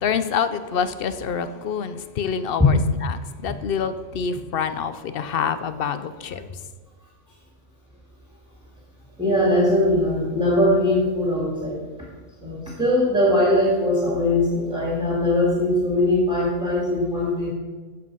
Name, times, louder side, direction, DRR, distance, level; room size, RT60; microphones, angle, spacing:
voice 1, 0.0-6.5, left 7 dB, 60° left, 12 dB, 0.8 m, -27 dB
voice 2, 9.2-11.8 12.4-17.5, left 1 dB, 5° right, -4 dB, 2.2 m, -20 dB
14.5 x 5.2 x 5.4 m, 1.4 s
omnidirectional pair, 1.2 m